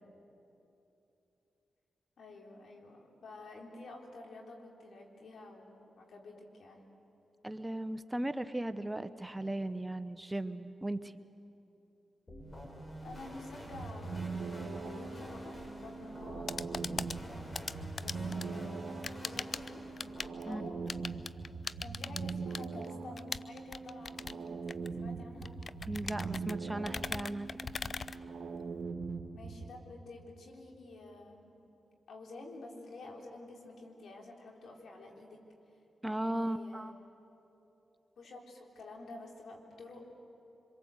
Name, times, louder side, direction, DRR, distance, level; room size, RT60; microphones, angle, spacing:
voice 1, 2.2-6.9 13.0-14.4 14.8-17.5 18.0-19.9 20.5-20.8 21.8-24.6 25.0-25.6 29.3-31.5 32.1-35.4 36.0-36.9 38.2-40.1, left 2 dB, 70° left, 0 dB, 3.7 m, -50 dB
voice 2, 7.4-11.1 20.4-20.6 25.9-27.7 36.0-37.0, right 1 dB, 15° right, 12 dB, 1.0 m, -37 dB
sound 1, 12.3-20.3, equal, 30° left, 6.5 m, -47 dB
sound 2, 13.6-29.7, right 4 dB, 70° right, 1.6 m, -42 dB
sound 3, 16.2-28.8, left 4 dB, 50° left, 0.6 m, -42 dB
26.0 x 23.0 x 8.0 m, 2.9 s
supercardioid pair, 40°, 0 cm